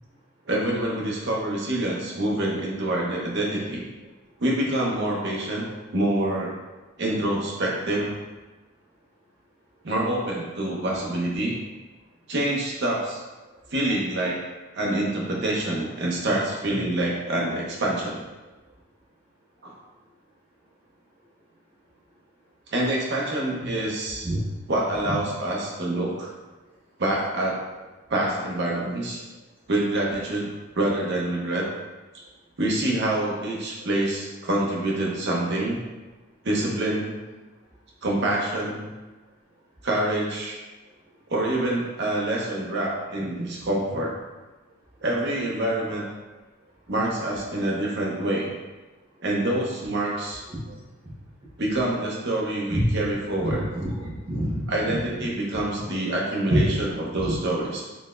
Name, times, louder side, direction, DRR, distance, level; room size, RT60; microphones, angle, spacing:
voice 1, 0.5-3.8 4.4-5.6 5.9-6.5 7.0-8.2 9.8-11.5 12.3-13.2 13.7-14.4 14.7-18.2 19.6-19.7 22.7-24.3 24.7-26.3 27.0-27.6 28.1-29.2 29.7-31.7 32.6-35.8 36.4-37.1 38.0-38.9 39.8-40.6 41.3-44.1 45.0-46.0 46.9-48.5 49.2-50.4 51.6-53.6 54.7-57.8, right 1 dB, 50° right, -3 dB, 0.8 m, -26 dB
voice 2, 53.4-54.7 56.5-56.8 57.2-57.4, equal, 25° right, -9 dB, 0.9 m, -26 dB
4.0 x 3.2 x 2.5 m, 1.2 s
head